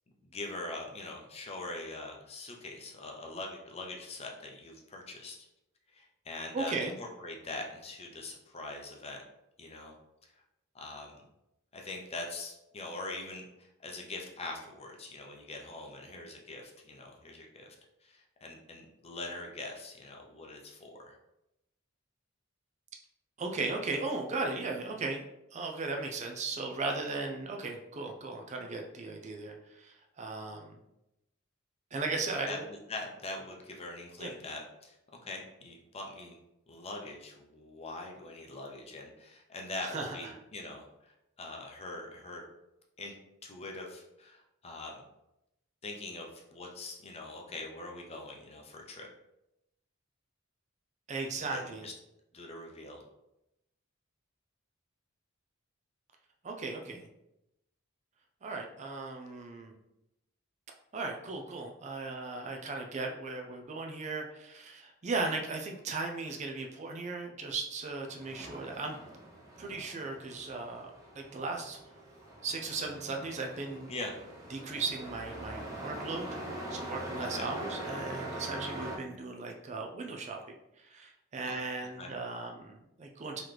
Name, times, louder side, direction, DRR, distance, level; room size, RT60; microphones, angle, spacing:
voice 1, 0.2-5.5 5.9-9.2 9.6-9.9 10.7-11.2 11.7-17.8 18.0-21.2 32.5-35.0 35.2-36.4 36.7-42.4 43.0-43.1 43.4-45.0 45.8-49.1 51.3-51.9 52.3-53.0 73.9-74.1 77.3-77.5 81.4-81.6 82.0-82.1, left 2 dB, 30° left, 1 dB, 0.6 m, -43 dB
voice 2, 6.5-6.9 23.4-25.2 25.5-30.8 31.9-32.6 34.2-34.3 39.8-40.3 51.1-51.9 56.4-57.0 58.4-59.7 60.9-69.0 69.6-70.9 71.2-71.8 72.4-73.9 74.5-76.3 76.7-80.4 80.8-83.4, right 3 dB, 35° right, 2 dB, 0.4 m, -37 dB
Truck, 67.9-79.0, right 1 dB, 15° right, 0.8 m, -43 dB
4.0 x 3.0 x 3.2 m, 0.87 s
head